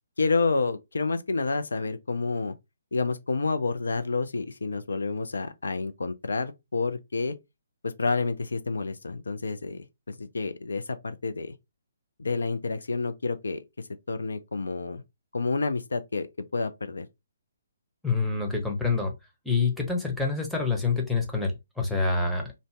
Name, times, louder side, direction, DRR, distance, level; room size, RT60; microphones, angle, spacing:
voice 1, 0.2-2.5 2.9-7.4 7.8-11.6 12.2-15.0 15.3-16.3 16.5-17.1, left 3 dB, 70° left, 0.4 m, -29 dB
voice 2, 18.0-19.1 19.4-22.5, left 4 dB, ahead, 0.7 m, -26 dB
2.6 x 2.0 x 3.1 m
figure-of-eight pair, 135°, 0 cm